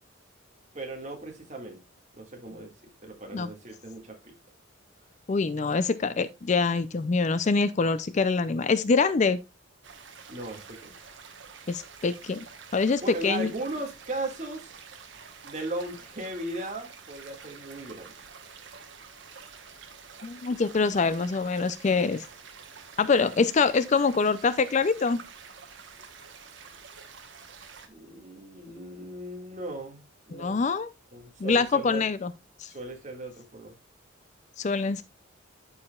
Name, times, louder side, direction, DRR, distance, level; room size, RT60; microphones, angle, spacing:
voice 1, 0.7-1.8 2.1-2.7 3.0-4.3 10.3-10.9 13.0-14.7 15.4-18.2 27.9-30.7 31.1-32.0 32.7-33.8, right 2 dB, 35° right, 1.9 m, -37 dB
voice 2, 5.3-9.4 11.7-12.5 12.7-13.5 20.2-22.2 23.0-25.2 30.3-30.9 31.4-32.3 32.6-32.7 34.6-35.0, left 4 dB, 35° left, 0.4 m, -25 dB
sound 1, 9.8-27.9, right 6 dB, 65° right, 1.1 m, -48 dB
13.0 x 4.9 x 2.3 m
head